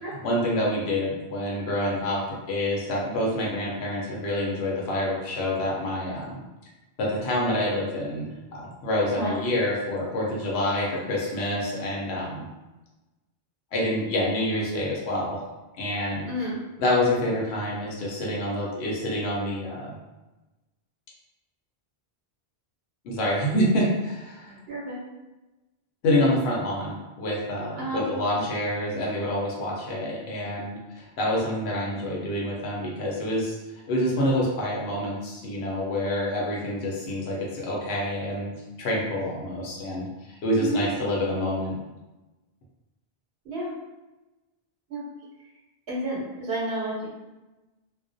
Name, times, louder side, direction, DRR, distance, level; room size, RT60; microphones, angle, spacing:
voice 1, 0.1-2.2 2.5-6.4 7.0-12.5 13.7-15.4 15.8-16.3 16.8-19.9 23.0-24.6 26.0-33.6 33.9-41.8, left 1 dB, 80° left, -4 dB, 0.9 m, -27 dB
voice 2, 16.3-16.6 24.7-25.0 27.8-28.0 40.6-40.8 43.5-43.7 44.9-45.0 45.9-47.1, right 1 dB, 75° right, -6 dB, 0.9 m, -30 dB
2.3 x 2.1 x 2.5 m, 1.1 s
omnidirectional pair, 1.1 m